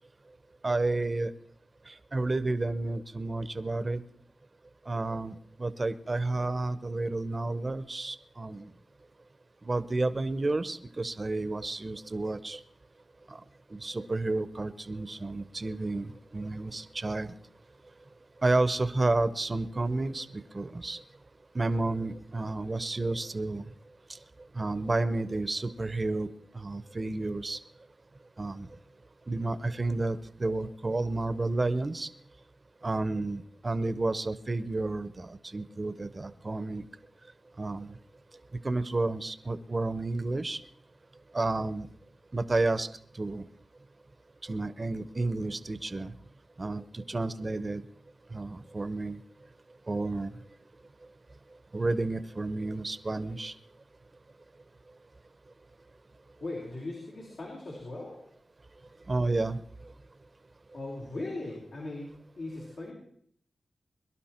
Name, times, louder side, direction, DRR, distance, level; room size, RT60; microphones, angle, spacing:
voice 1, 0.6-1.3 1.9-4.0 4.9-8.7 9.6-12.6 13.3-13.4 13.7-17.3 18.4-21.0 21.5-23.6 24.1-24.2 24.5-26.3 26.5-27.6 28.4-28.7 29.3-32.1 32.8-36.8 37.6-37.9 38.6-40.6 41.3-41.9 42.3-42.9 43.1-43.4 44.4-46.1 46.6-47.8 48.3-49.2 49.9-50.3 51.7-53.5 59.1-59.6, right 2 dB, 40° right, 15 dB, 0.8 m, -31 dB
voice 2, 56.4-58.2 60.7-62.9, left 2 dB, 75° left, -4 dB, 4.0 m, -39 dB
22.5 x 11.5 x 4.4 m, 0.64 s
cardioid pair, 55°, 0 cm